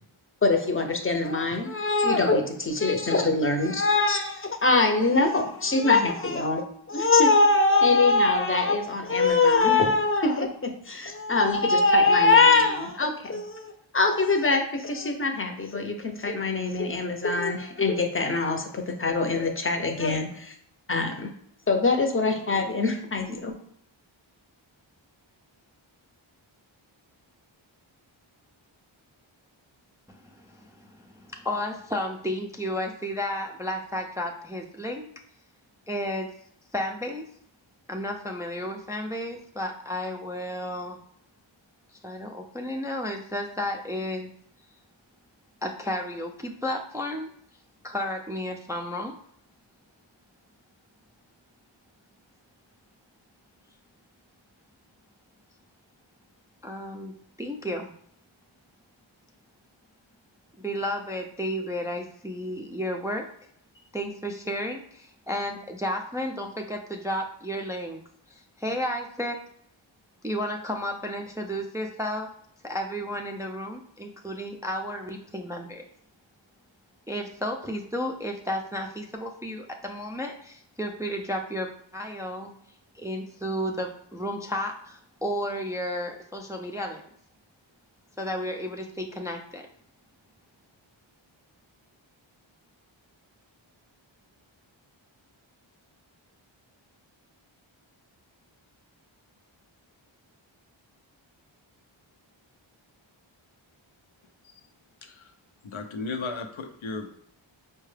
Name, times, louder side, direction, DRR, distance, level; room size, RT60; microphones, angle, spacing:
voice 1, 0.4-6.6 6.9-20.5 20.9-21.3 21.7-23.5, left 3 dB, 25° left, 4 dB, 0.7 m, -23 dB
voice 2, 30.1-35.1 35.9-36.3 36.7-37.2 37.9-41.0 42.0-44.3 45.6-47.3 47.8-49.1 56.6-57.1 57.4-57.9 60.6-63.3 63.9-68.0 68.3-69.4 70.2-72.3 72.6-75.8 77.1-82.5 82.9-87.0 88.2-89.7, equal, 5° right, 2 dB, 0.4 m, -32 dB
voice 3, 105.0-105.3 105.6-107.2, left 4 dB, 75° left, 6 dB, 0.6 m, -35 dB
4.6 x 2.2 x 3.2 m, 0.68 s
wide cardioid pair, 50°, 48 cm